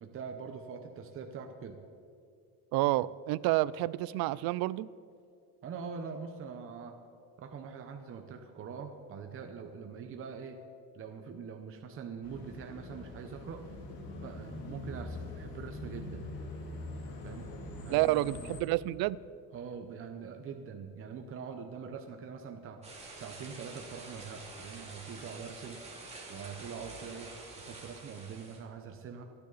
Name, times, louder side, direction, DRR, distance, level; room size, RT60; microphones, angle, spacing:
voice 1, 0.0-1.8 5.6-7.0 7.4-10.6 10.9-13.6 14.2-16.3 17.2-17.5 17.8-18.2 19.5-22.8 23.1-25.8 26.3-29.2, right 6 dB, 35° right, 0.9 m, -43 dB
voice 2, 2.7-4.9 17.9-19.2, right 17 dB, 70° right, 0.5 m, -29 dB
sound 1, 12.2-18.6, left 2 dB, 85° left, 3.1 m, -43 dB
sound 2, 22.8-28.6, right 2 dB, 15° right, 2.5 m, -48 dB
27.0 x 9.6 x 4.1 m
cardioid pair, 170°, 38 cm